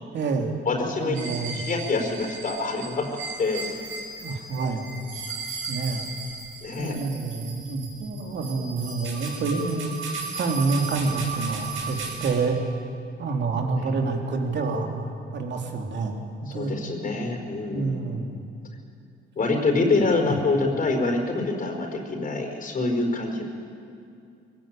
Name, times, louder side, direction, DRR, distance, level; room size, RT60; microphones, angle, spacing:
voice 1, 0.1-0.5 1.0-1.6 4.2-4.9 5.7-6.0 6.8-9.9 10.3-12.6 13.2-16.2 16.5-16.8 17.7-18.4 20.2-20.3, right 4 dB, 65° right, 2 dB, 3.0 m, -28 dB
voice 2, 0.6-3.1 3.4-3.8 6.6-7.0 13.8-13.9 16.5-18.2 19.4-23.4, left 3 dB, 45° left, 3 dB, 4.7 m, -26 dB
sound 1, 1.1-12.3, right 4 dB, 85° right, 5.6 m, -36 dB
23.0 x 17.0 x 9.0 m, 2.5 s
cardioid pair, 90°, 20 cm